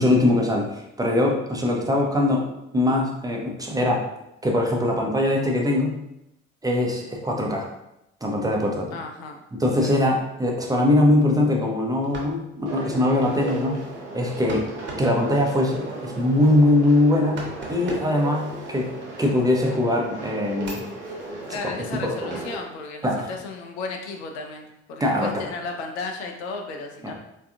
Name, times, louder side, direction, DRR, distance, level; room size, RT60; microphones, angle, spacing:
voice 1, 0.0-2.5 2.7-4.0 4.4-6.0 6.6-7.7 8.2-8.9 9.5-13.8 14.1-18.9 19.2-20.8 22.0-22.3 23.0-23.3 25.0-25.5 27.0-27.1, left 1 dB, 10° right, 0 dB, 0.5 m, -22 dB
voice 2, 8.9-9.4 9.8-10.0 21.5-27.1, left 3 dB, 70° left, 3 dB, 0.5 m, -34 dB
sound 1, 11.9-19.5 20.0-22.7, right 2 dB, 35° right, 0.8 m, -43 dB
sound 2, 12.7-22.6, right 2 dB, 90° right, 0.5 m, -36 dB
3.4 x 2.3 x 2.4 m, 0.86 s
figure-of-eight pair, 50°, 34 cm